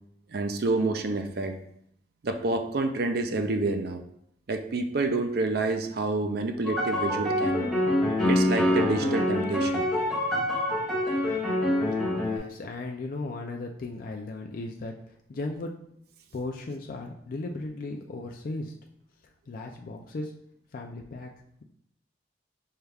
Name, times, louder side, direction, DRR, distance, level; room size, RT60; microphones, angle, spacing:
voice 1, 0.3-1.5 2.2-4.0 4.5-7.7 8.2-9.8, right 3 dB, 60° right, 6 dB, 0.5 m, -28 dB
sound 1, 6.6-12.4, left 1 dB, 5° left, 0.8 m, -25 dB
voice 2, 11.8-15.7 16.3-18.8 19.5-20.3 20.7-21.3, left 2 dB, 55° left, 2 dB, 0.4 m, -36 dB
5.5 x 2.3 x 3.3 m, 0.72 s
head